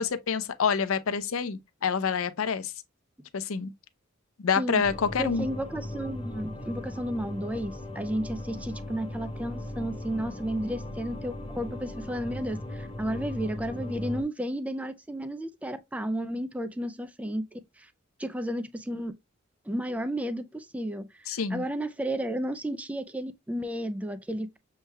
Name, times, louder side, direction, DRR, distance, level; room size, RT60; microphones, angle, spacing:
voice 1, 0.0-2.7 3.3-3.7 4.4-5.5 21.3-21.7, left 6 dB, 75° left, 0.5 m, -27 dB
sound 1, 4.8-14.2, left 1 dB, 25° left, 0.8 m, -38 dB
voice 2, 5.2-17.9 18.2-19.1 19.7-24.6, right 1 dB, 5° right, 0.3 m, -33 dB
6.6 x 3.2 x 2.2 m
head